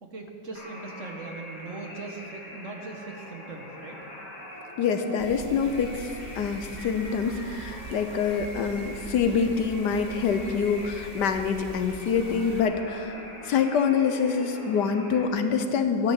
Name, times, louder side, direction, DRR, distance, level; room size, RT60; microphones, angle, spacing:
voice 1, 0.0-4.0, right 3 dB, 50° right, 2 dB, 1.4 m, -40 dB
sound 1, 0.5-15.3, left 1 dB, 40° left, 2.4 m, -43 dB
voice 2, 4.8-6.1 6.4-13.1 13.4-16.1, left 6 dB, 70° left, 8 dB, 1.4 m, -26 dB
sound 2, 5.2-12.6, right 3 dB, 90° right, 0.4 m, -43 dB
12.5 x 9.9 x 7.3 m, 2.5 s
omnidirectional pair, 1.9 m